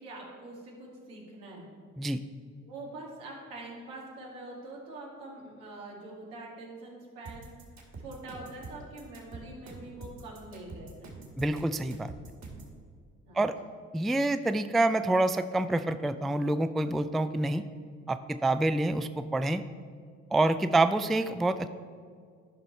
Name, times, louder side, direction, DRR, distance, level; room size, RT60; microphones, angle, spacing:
voice 1, 0.0-1.7 2.6-7.5 8.0-11.2 13.3-13.8, right 2 dB, 80° right, -3 dB, 2.3 m, -45 dB
sound 1, 7.3-12.8, right 3 dB, 50° right, 2.3 m, -45 dB
voice 2, 11.4-12.1 13.3-13.5 13.9-17.6 18.1-19.6 20.3-21.7, right 2 dB, ahead, 11 dB, 0.3 m, -27 dB
11.5 x 5.3 x 4.5 m, 2.1 s
hypercardioid pair, 50°, 36 cm